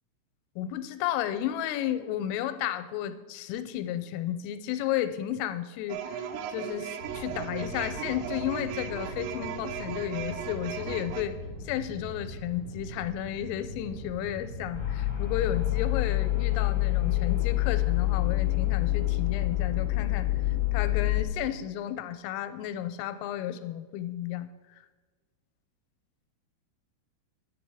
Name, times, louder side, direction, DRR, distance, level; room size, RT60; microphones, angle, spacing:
voice 1, 0.6-6.2 6.5-11.4 11.7-20.3 20.7-24.5, left 11 dB, 90° left, 11 dB, 3.2 m, -33 dB
sound 1, 5.9-11.2, right 8 dB, 90° right, 3.3 m, -37 dB
sound 2, 7.0-16.1, left 1 dB, 50° right, 2.4 m, -41 dB
sound 3, 14.7-21.2, left 17 dB, 70° left, 1.1 m, -26 dB
10.0 x 7.6 x 4.8 m, 1.3 s
omnidirectional pair, 5.8 m